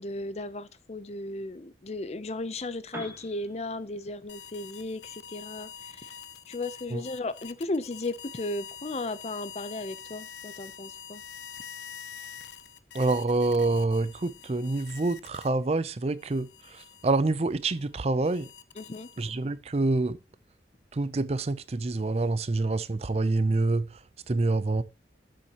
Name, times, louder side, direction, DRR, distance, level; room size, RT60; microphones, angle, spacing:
voice 1, 0.0-6.1 6.5-11.2 18.8-19.1, left 2 dB, 35° left, 0.6 m, -35 dB
Piano, 2.8-10.6, equal, 15° right, 3.0 m, -52 dB
sound 1, 4.3-15.8 16.2-19.6, left 7 dB, 75° left, 0.7 m, -46 dB
voice 2, 12.9-18.5 19.2-20.2 20.9-24.8, right 2 dB, 35° right, 0.5 m, -27 dB
12.0 x 7.0 x 2.9 m
head